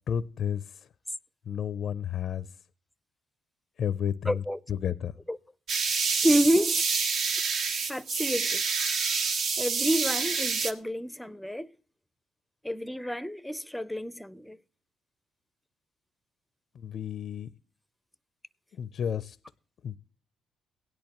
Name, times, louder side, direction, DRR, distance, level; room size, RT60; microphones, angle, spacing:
voice 1, 0.1-0.7 1.5-2.5 3.8-4.4 4.7-5.1 16.8-17.5 18.8-19.4 19.8-20.0, left 8 dB, 60° left, 0.5 m, -31 dB
voice 2, 4.3-4.6 5.3-5.4 6.2-6.8 7.9-8.6 9.6-11.7 12.6-14.6, equal, 5° left, 0.5 m, -28 dB
sound 1, 5.7-10.7, right 5 dB, 65° right, 1.0 m, -28 dB
17.0 x 10.5 x 3.0 m
supercardioid pair, 70°, 0 cm